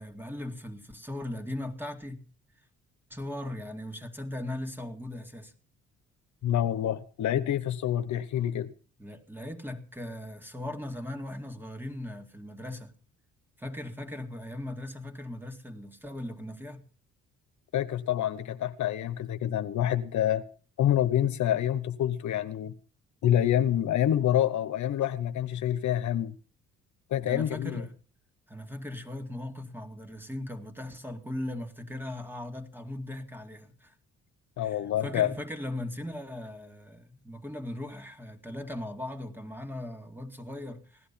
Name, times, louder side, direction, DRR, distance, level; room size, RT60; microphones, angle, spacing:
voice 1, 0.0-2.2 3.1-5.5 9.0-12.9 13.6-16.8 27.2-27.9 28.5-33.9 34.6-41.1, left 1 dB, 5° right, 2.3 m, -38 dB
voice 2, 6.4-8.7 17.7-20.4 20.8-22.7 23.2-26.3 27.1-27.8 34.6-35.3, left 11 dB, 70° left, 1.1 m, -27 dB
17.0 x 11.5 x 5.7 m
cardioid pair, 90°, 30 cm